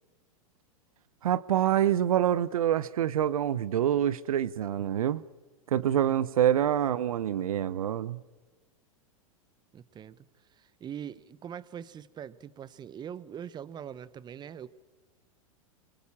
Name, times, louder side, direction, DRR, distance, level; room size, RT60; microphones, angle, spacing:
voice 1, 1.2-5.2 5.7-8.2, right 10 dB, 80° right, 0.8 m, -26 dB
voice 2, 9.7-14.7, right 9 dB, 25° right, 1.0 m, -43 dB
26.5 x 24.0 x 7.3 m
hypercardioid pair, 105°, 18 cm